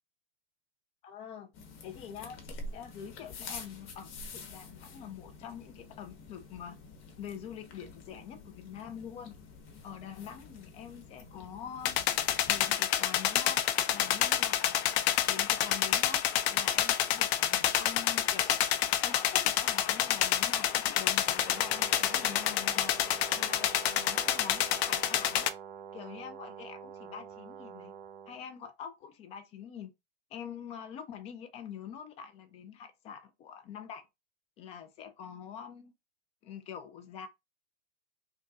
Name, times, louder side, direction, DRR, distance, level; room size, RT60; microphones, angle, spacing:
voice 1, 1.0-1.5 1.8-6.8 7.2-9.4 9.8-12.0 12.5-13.6 13.9-14.8 15.3-16.2 16.5-18.5 19.0-22.9 23.4-25.5 25.9-27.9 28.3-29.9 30.3-34.1 34.6-35.9 36.4-37.3, left 8 dB, 20° left, 0.4 m, -45 dB
sound 1, 1.5-12.7, left 3 dB, 35° left, 1.1 m, -48 dB
sound 2, 11.8-25.5, left 11 dB, 60° left, 0.6 m, -28 dB
Brass instrument, 21.4-28.4, right 7 dB, 55° right, 0.9 m, -47 dB
3.5 x 2.2 x 3.9 m
hypercardioid pair, 125°, 37 cm